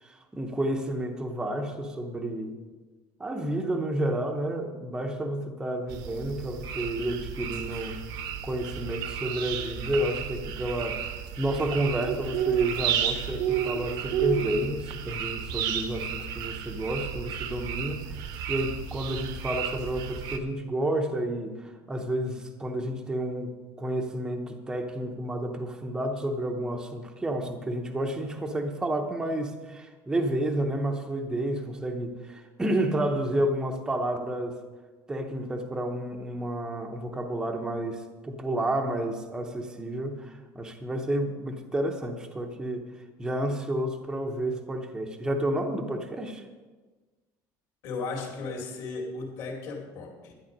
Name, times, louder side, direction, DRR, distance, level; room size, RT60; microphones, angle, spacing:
voice 1, 0.0-2.6 3.2-8.0 8.4-11.0 11.4-34.6 35.1-42.9 43.2-46.4, right 1 dB, 10° right, 3 dB, 0.8 m, -30 dB
sound 1, 5.9-20.4, right 9 dB, 55° right, 0.9 m, -32 dB
voice 2, 47.8-50.3, left 3 dB, 55° left, 0 dB, 2.6 m, -35 dB
12.0 x 10.0 x 5.3 m, 1.3 s
cardioid pair, 180°, 8 cm